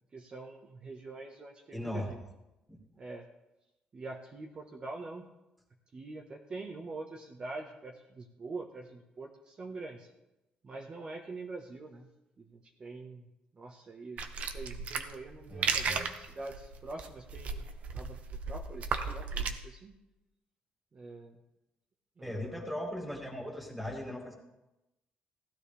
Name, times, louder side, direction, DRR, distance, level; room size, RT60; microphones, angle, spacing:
voice 1, 0.1-2.2 3.0-3.3 3.9-5.3 5.9-10.1 10.6-12.1 12.4-13.3 13.5-17.7 17.9-18.2 18.5-20.0 20.9-21.4 22.2-22.7, right 3 dB, 35° right, 1 dB, 1.4 m, -44 dB
voice 2, 1.7-2.1 2.7-2.8 15.5-16.1 22.2-24.4, left 1 dB, 5° right, 1 dB, 2.5 m, -38 dB
sound 1, 14.2-19.5, right 5 dB, 55° right, 1.1 m, -35 dB
16.5 x 12.0 x 3.5 m, 0.96 s
cardioid pair, 115°, 3 cm